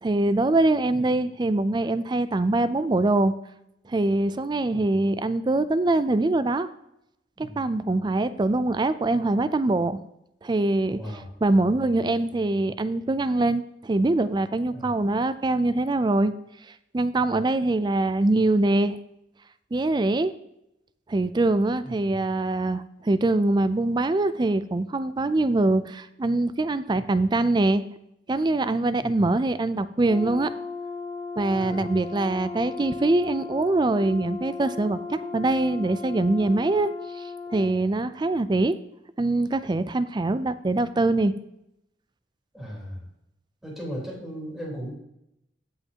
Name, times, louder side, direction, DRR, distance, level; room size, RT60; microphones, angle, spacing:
voice 1, 0.0-3.3 3.9-6.7 7.4-10.0 10.4-16.3 16.9-19.0 19.7-20.3 21.1-27.9 28.3-30.5 31.4-36.9 37.2-37.3 37.5-38.8 39.2-41.4, right 2 dB, 25° right, 13 dB, 0.4 m, -23 dB
voice 2, 10.9-11.3 14.7-15.0 17.2-17.4 21.8-22.1 26.9-27.0 29.0-29.2 31.5-31.9 42.5-43.1 43.6-44.9, equal, ahead, -6 dB, 3.7 m, -37 dB
Brass instrument, 30.0-37.8, left 4 dB, 15° left, 2.8 m, -36 dB
16.0 x 5.7 x 2.9 m, 0.82 s
head